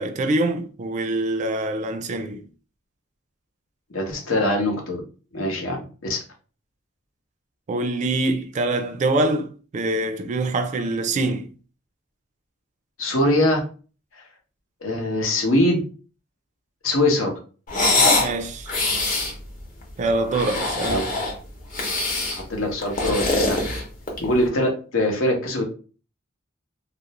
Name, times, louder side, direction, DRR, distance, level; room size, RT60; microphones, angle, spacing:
voice 1, 0.0-2.4 7.7-11.5 18.2-18.7 20.0-21.0, right 2 dB, 40° right, 0.3 m, -24 dB
voice 2, 3.9-5.0 5.3-5.8 6.0-6.2 13.0-13.6 14.1-14.2 14.8-15.8 16.8-17.3 20.9-21.0 22.3-23.6 24.2-25.6, left 1 dB, 90° left, 0.8 m, -22 dB
sound 1, 17.7-18.3 18.7-19.3 20.2-21.4 21.7-22.4 22.8-24.3, left 2 dB, 40° left, 0.7 m, -23 dB
2.4 x 2.0 x 2.8 m
head